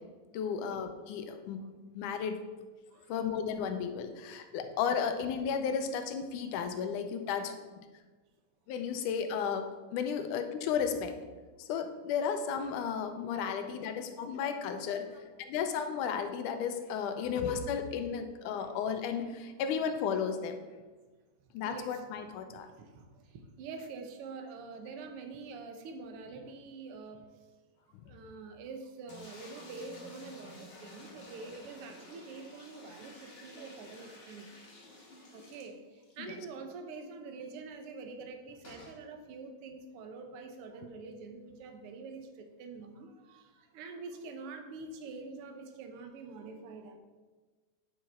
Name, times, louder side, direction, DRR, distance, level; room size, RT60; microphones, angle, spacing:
voice 1, 0.3-1.6 2.0-2.4 3.1-7.5 8.7-11.2 11.7-15.1 15.4-20.6 21.5-22.7 36.2-36.4, left 7 dB, 85° left, 7 dB, 2.2 m, -34 dB
voice 2, 7.2-7.6 10.2-10.3 13.5-14.3 14.9-15.2 17.0-17.3 18.6-18.7 21.6-22.0 22.5-27.2 28.0-34.5 35.3-47.0, right 4 dB, 70° right, 6 dB, 1.4 m, -46 dB
sound 1, 29.1-36.2 36.6-36.7 36.9-37.0 38.6-39.0, left 1 dB, 45° left, 0.8 m, -52 dB
9.3 x 6.3 x 4.4 m, 1.3 s
omnidirectional pair, 3.6 m